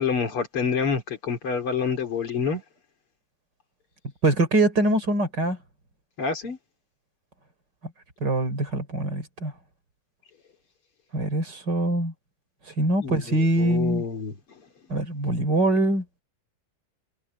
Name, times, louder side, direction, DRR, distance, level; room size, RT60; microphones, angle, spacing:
voice 1, 0.0-2.6 6.2-6.6 13.0-14.4, left 5 dB, 45° left, 3.7 m, -27 dB
voice 2, 4.2-5.6 8.2-9.5 11.1-12.1 12.7-14.0 14.9-16.2, right 1 dB, 35° right, 4.2 m, -23 dB
omnidirectional pair, 3.3 m